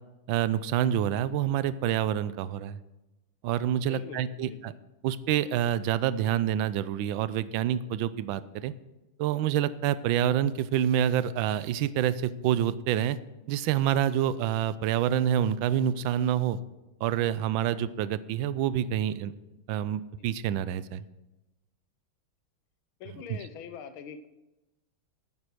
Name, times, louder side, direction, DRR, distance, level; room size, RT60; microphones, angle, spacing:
voice 1, 0.3-2.8 3.4-4.7 5.0-8.7 9.2-13.2 13.5-16.6 17.0-19.3 19.7-21.0 23.3-23.4, right 10 dB, 75° right, 15 dB, 1.3 m, -27 dB
voice 2, 3.9-4.7 20.2-20.3 23.0-24.3, left 7 dB, 80° left, 11 dB, 1.7 m, -44 dB
9.7 x 9.7 x 6.1 m, 0.99 s
omnidirectional pair, 2.3 m